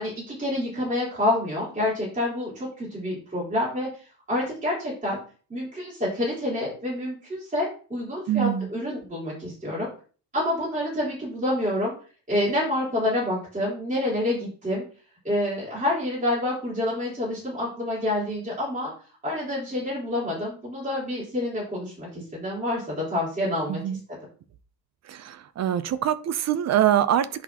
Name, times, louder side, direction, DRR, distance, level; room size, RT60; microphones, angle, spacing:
voice 1, 0.0-3.9 4.3-5.2 5.5-9.9 10.3-11.9 12.3-14.8 15.2-18.9 19.2-24.0, left 1 dB, 20° right, -7 dB, 3.9 m, -28 dB
voice 2, 8.3-8.7 23.7-24.0 25.1-27.3, right 11 dB, 40° right, 14 dB, 0.6 m, -24 dB
10.5 x 4.2 x 2.9 m, 0.39 s
cardioid pair, 155°, 41 cm